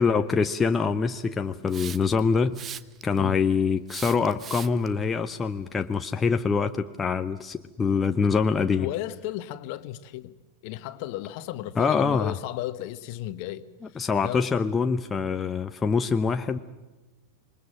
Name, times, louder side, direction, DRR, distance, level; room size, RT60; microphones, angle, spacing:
voice 1, 0.0-2.6 3.0-8.9 11.8-12.3 14.0-16.6, left 5 dB, 15° left, 0.9 m, -24 dB
Hiss, 1.7-2.2 2.5-3.2 3.9-4.9, right 8 dB, 25° right, 0.9 m, -38 dB
voice 2, 8.8-10.3 10.6-13.6 13.9-14.4, left 14 dB, 45° left, 1.4 m, -34 dB
27.5 x 22.5 x 7.5 m
figure-of-eight pair, 90°, 0 cm